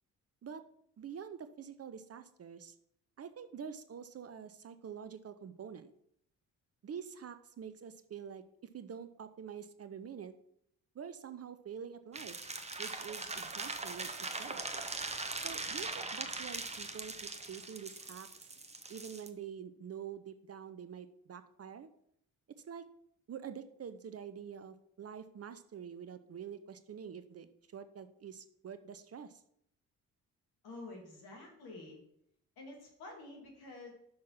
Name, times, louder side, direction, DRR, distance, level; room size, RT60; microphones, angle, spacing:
voice 1, 1.0-2.8 3.2-5.9 6.8-8.4 8.7-10.3 10.9-12.4 12.8-14.1 14.4-14.6 15.4-18.3 18.9-21.9 22.6-22.9 23.3-29.4, right 7 dB, 35° right, 11 dB, 0.7 m, -46 dB
sound 1, 12.1-19.3, right 3 dB, 15° right, 1.0 m, -41 dB
voice 2, 30.6-32.0 32.6-33.9, left 2 dB, 65° left, 0 dB, 2.7 m, -49 dB
6.4 x 5.9 x 5.8 m, 0.72 s
hypercardioid pair, 45°, 41 cm